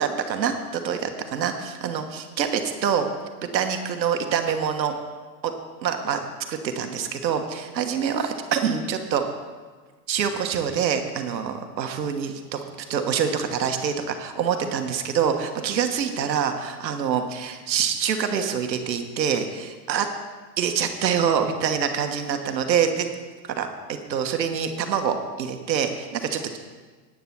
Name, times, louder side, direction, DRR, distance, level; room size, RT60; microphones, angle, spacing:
voice 1, 0.0-3.1 3.5-4.9 5.4-5.5 5.8-6.2 6.5-9.2 10.1-12.6 12.9-20.1 20.6-23.1 23.4-23.7 24.1-26.6, right 7 dB, 85° right, 6 dB, 1.4 m, -25 dB
9.8 x 9.3 x 5.9 m, 1.4 s
hypercardioid pair, 115°, 50 cm